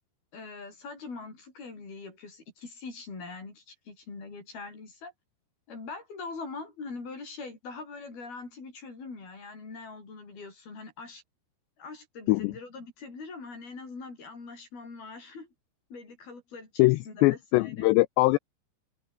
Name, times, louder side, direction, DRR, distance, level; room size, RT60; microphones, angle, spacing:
voice 1, 0.3-5.1 5.7-11.2 11.8-15.5 15.9-17.9, left 4 dB, 50° left, 9.4 m, -42 dB
voice 2, 16.8-18.4, left 21 dB, 85° left, 2.5 m, -22 dB
omnidirectional pair, 5.5 m